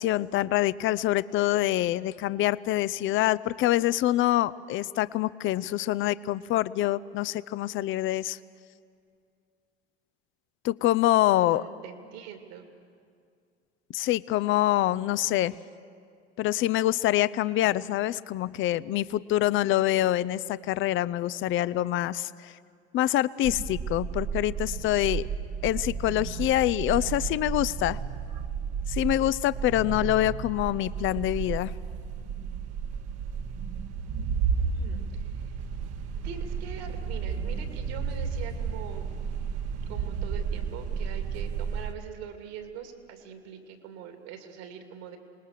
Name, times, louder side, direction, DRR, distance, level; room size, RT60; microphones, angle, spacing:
voice 1, 0.0-8.4 10.6-11.6 13.9-15.5 16.4-22.5 22.9-25.3 25.6-28.0 28.9-31.7, left 14 dB, 40° left, 18 dB, 0.5 m, -25 dB
voice 2, 11.3-12.7 34.6-35.5 36.2-39.1 39.9-45.2, right 7 dB, 70° right, 6 dB, 2.7 m, -43 dB
sound 1, 23.4-41.9, right 6 dB, 50° right, 1.2 m, -32 dB
27.0 x 19.5 x 6.7 m, 2.3 s
hypercardioid pair, 85°, 33 cm